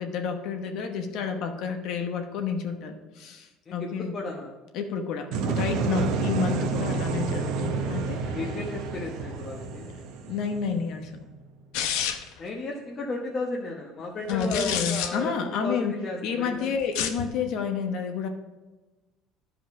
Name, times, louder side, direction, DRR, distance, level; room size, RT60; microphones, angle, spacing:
voice 1, 0.0-4.1 4.7-8.4 10.3-11.1 14.3-15.9 16.2-18.3, left 6 dB, 60° left, 5 dB, 1.0 m, -30 dB
voice 2, 3.6-4.5 8.3-9.9 12.4-16.7, left 3 dB, 30° left, -1 dB, 1.0 m, -34 dB
sound 1, 5.3-11.2, right 4 dB, 65° right, 1.0 m, -30 dB
sound 2, 11.7-12.4 14.3-15.1 16.8-17.3, left 9 dB, 85° left, 0.8 m, -29 dB
11.0 x 5.0 x 4.7 m, 1.2 s
cardioid pair, 150°, 0 cm